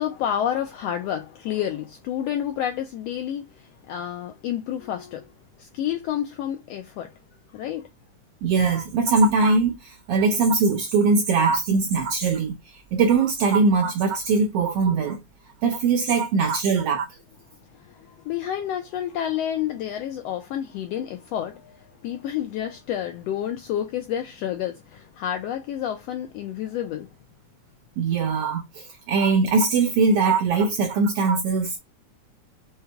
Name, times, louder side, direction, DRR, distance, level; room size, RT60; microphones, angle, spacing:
voice 1, 0.0-5.3 5.6-7.1 7.5-7.9 17.7-27.1, left 10 dB, 80° left, 1.5 m, -29 dB
voice 2, 8.4-15.2 15.6-17.1 28.0-31.8, right 4 dB, 75° right, 1.4 m, -21 dB
5.5 x 2.2 x 3.4 m
omnidirectional pair, 3.4 m